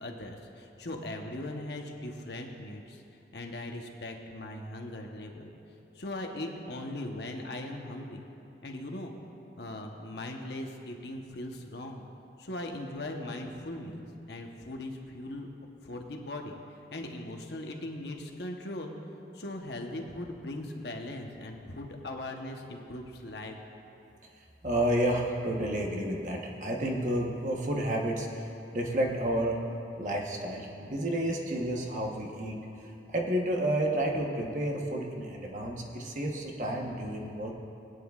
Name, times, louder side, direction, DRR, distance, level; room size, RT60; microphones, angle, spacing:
voice 1, 0.0-3.0 3.3-5.5 5.9-8.2 8.6-9.1 9.6-12.0 12.4-15.5 15.8-16.6 16.9-18.9 19.3-23.6, left 1 dB, 70° left, 2 dB, 1.0 m, -39 dB
voice 2, 24.6-29.6 30.0-37.5, right 1 dB, 45° right, 0 dB, 1.0 m, -31 dB
20.5 x 9.3 x 2.4 m, 2.8 s
head